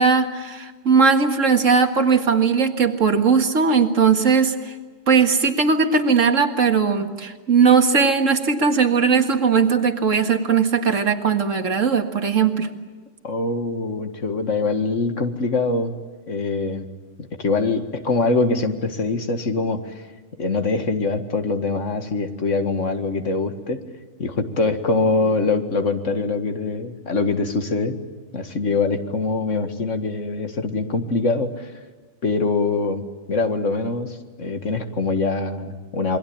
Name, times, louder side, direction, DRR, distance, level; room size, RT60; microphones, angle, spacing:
voice 1, 0.0-4.6 5.1-12.7, right 5 dB, 85° right, 6 dB, 2.2 m, -18 dB
voice 2, 13.2-15.9 16.3-16.9 17.2-19.9 20.4-23.8 24.2-28.0 28.3-31.7 32.2-33.0 33.3-36.2, left 3 dB, 75° left, 7 dB, 2.2 m, -23 dB
27.5 x 22.5 x 8.8 m, 1.3 s
omnidirectional pair, 1.3 m